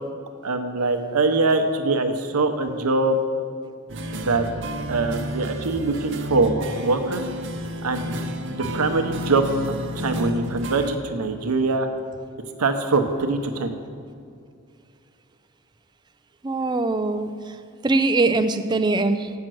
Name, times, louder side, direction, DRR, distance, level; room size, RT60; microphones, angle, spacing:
voice 1, 0.4-3.2 4.1-4.4 4.9-7.2 7.8-9.5 10.0-11.9 12.6-13.7, right 3 dB, 85° right, 7 dB, 0.8 m, -23 dB
sound 1, 3.9-11.0, equal, 55° right, 0.6 m, -31 dB
voice 2, 16.4-19.3, right 3 dB, 20° right, 8 dB, 0.3 m, -22 dB
7.6 x 5.8 x 7.6 m, 2.3 s
head